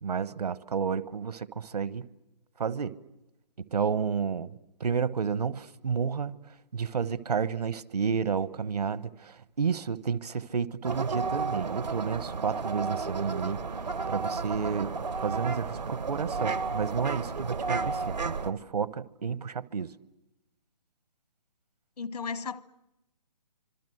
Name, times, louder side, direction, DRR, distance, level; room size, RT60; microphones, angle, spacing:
voice 1, 0.0-2.1 2.6-3.0 3.6-4.5 4.8-6.3 6.7-13.6 14.1-15.0 15.2-19.9, right 6 dB, 70° right, 1.1 m, -31 dB
sound 1, 10.8-18.5, right 4 dB, 85° right, 1.6 m, -32 dB
voice 2, 22.0-22.6, left 5 dB, 70° left, 1.1 m, -35 dB
29.0 x 25.5 x 7.8 m
hypercardioid pair, 155°, 21 cm